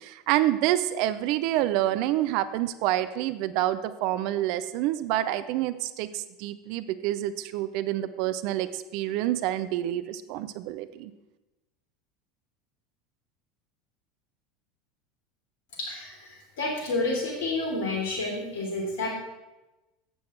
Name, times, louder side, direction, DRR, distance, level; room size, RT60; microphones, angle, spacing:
voice 1, 0.0-11.1, right 13 dB, 55° right, 13 dB, 0.6 m, -27 dB
voice 2, 15.8-19.2, left 2 dB, 65° left, 0 dB, 3.4 m, -30 dB
12.0 x 8.5 x 4.5 m, 1.0 s
figure-of-eight pair, 75°, 0 cm